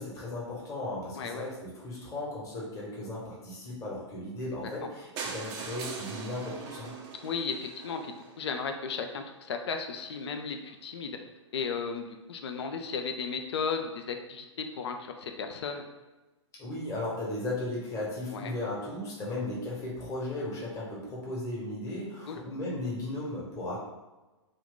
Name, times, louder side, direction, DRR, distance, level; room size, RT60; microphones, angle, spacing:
voice 1, 0.0-6.9 16.6-23.8, left 1 dB, 20° left, -5 dB, 1.1 m, -36 dB
sound 1, 5.2-9.1 9.7-9.8 10.0-10.1 10.4-10.5 10.7-10.8, right 5 dB, 25° right, 0.4 m, -41 dB
voice 2, 7.2-11.2 11.5-15.8 18.3-18.5 22.3-22.4, left 5 dB, 60° left, 5 dB, 0.5 m, -35 dB
2.6 x 2.5 x 3.7 m, 1.1 s
figure-of-eight pair, 115°, 16 cm